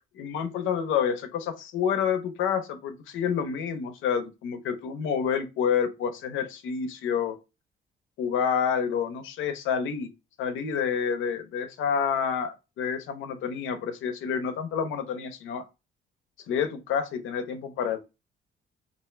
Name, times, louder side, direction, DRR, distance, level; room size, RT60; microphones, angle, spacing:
voice 1, 0.2-7.4 8.2-10.1 10.4-15.6 16.5-18.0, left 7 dB, 85° left, 0.6 m, -28 dB
2.5 x 2.4 x 3.1 m
cardioid pair, 90°, 20 cm